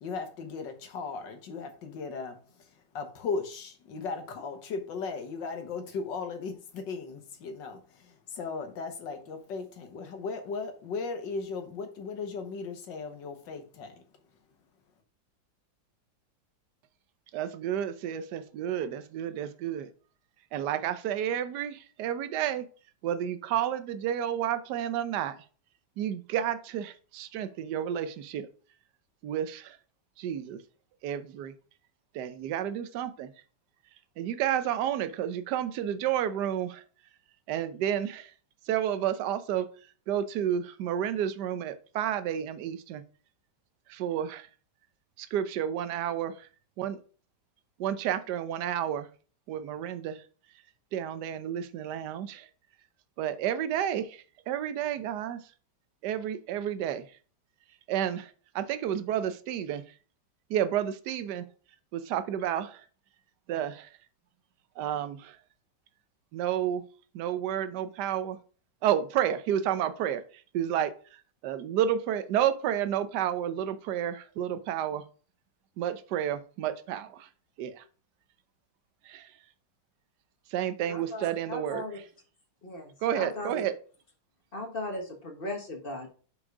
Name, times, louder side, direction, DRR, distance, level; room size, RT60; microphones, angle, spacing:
voice 1, 0.0-14.0, left 4 dB, 70° left, 1.8 m, -37 dB
voice 2, 17.3-19.9 20.5-22.7 23.0-25.4 26.0-28.5 29.2-29.8 30.2-30.6 31.0-31.5 32.1-33.3 34.2-36.8 37.5-38.3 38.7-39.7 40.1-43.0 43.9-44.5 45.2-46.3 46.8-47.0 47.8-49.1 49.5-50.2 50.9-52.5 53.2-54.1 54.5-55.4 56.0-57.0 57.9-59.8 60.5-61.5 61.9-62.8 63.5-63.9 64.8-65.3 66.3-66.8 67.1-68.4 68.8-70.2 70.5-70.9 71.4-75.0 75.8-77.3 77.6-77.8 79.1-79.3 80.5-81.9 83.0-83.7, right 10 dB, 70° right, 1.2 m, -30 dB
voice 3, 80.8-82.0 82.6-83.7 84.5-86.1, left 1 dB, 35° left, 1.2 m, -37 dB
5.3 x 5.1 x 4.7 m
omnidirectional pair, 2.1 m